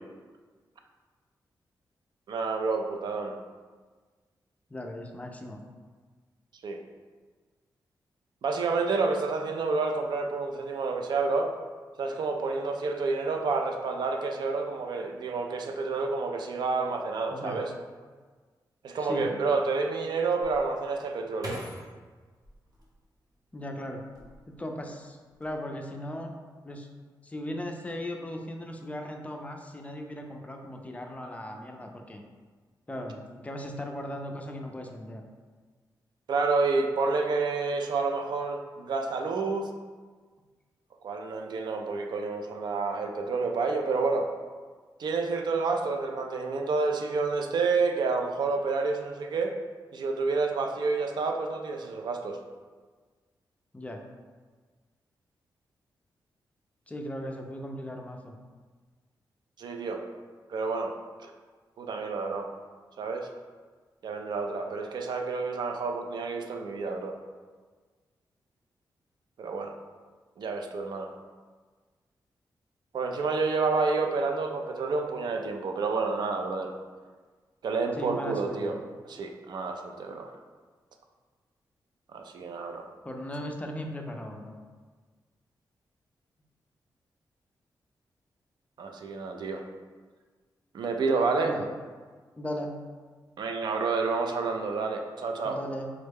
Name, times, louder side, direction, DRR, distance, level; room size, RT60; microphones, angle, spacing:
voice 1, 2.3-3.3 6.6-6.8 8.4-11.5 12.0-17.7 18.8-21.6 36.3-39.7 41.0-44.3 45.0-49.6 49.9-52.4 59.6-60.0 60.5-60.9 61.2-61.3 61.8-62.5 63.0-63.3 64.0-67.2 69.4-69.7 70.4-71.1 72.9-76.7 77.6-78.8 79.1-80.3 82.1-82.9 88.8-89.6 90.7-91.5 93.4-95.6, right 4 dB, 70° right, 4 dB, 0.3 m, -29 dB
voice 2, 4.7-5.6 17.3-17.6 19.0-19.3 23.5-24.0 24.5-26.3 26.6-26.9 27.2-32.2 32.9-35.2 53.7-54.0 56.9-58.3 78.0-78.7 83.0-84.6 91.4-91.7 92.4-92.8 95.4-95.9, left 1 dB, 20° left, 2 dB, 0.4 m, -37 dB
sound 1, 20.4-23.5 24.0-24.8 25.1-25.6, equal, 55° right, 0.7 m, -43 dB
3.5 x 2.1 x 3.4 m, 1.4 s
cardioid pair, 95°, 8 cm